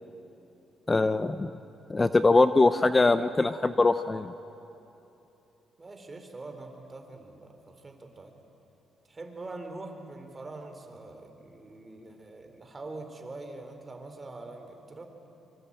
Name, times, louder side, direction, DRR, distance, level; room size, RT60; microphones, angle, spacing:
voice 1, 0.9-1.5 1.9-4.3, left 3 dB, 20° left, 12 dB, 0.7 m, -22 dB
voice 2, 5.8-8.4 9.1-15.1, right 2 dB, 25° right, 5 dB, 4.1 m, -43 dB
25.0 x 24.5 x 8.9 m, 2.9 s
cardioid pair, 90°, 0 cm